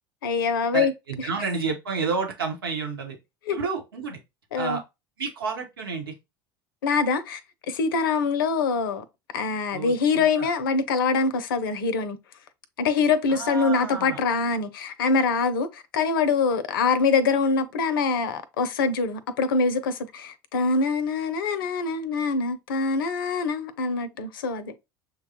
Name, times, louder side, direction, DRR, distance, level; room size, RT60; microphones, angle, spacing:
voice 1, 0.2-0.9 3.5-3.6 4.5-4.8 6.8-7.4 7.7-9.0 9.3-12.2 12.8-24.7, left 4 dB, 75° left, 0.6 m, -24 dB
voice 2, 0.7-3.2 3.5-4.2 4.5-4.8 5.2-6.1 9.7-10.5 13.3-14.2, right 5 dB, 85° right, 1.1 m, -30 dB
6.6 x 2.3 x 2.8 m
hypercardioid pair, 70°, 12 cm